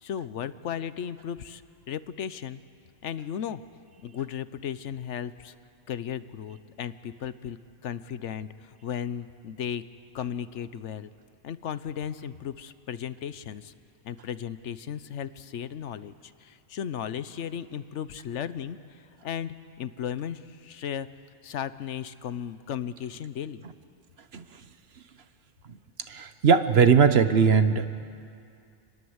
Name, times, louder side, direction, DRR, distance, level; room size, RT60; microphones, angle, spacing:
voice 1, 0.0-1.6 1.9-2.6 3.0-3.6 4.0-5.5 5.9-7.6 7.8-9.8 10.1-11.1 11.4-13.7 14.0-21.1 21.4-23.6, left 9 dB, 80° left, 14 dB, 1.1 m, -35 dB
voice 2, 26.1-27.9, right 6 dB, 60° right, 11 dB, 1.2 m, -20 dB
27.5 x 20.5 x 8.0 m, 2.4 s
omnidirectional pair, 1.2 m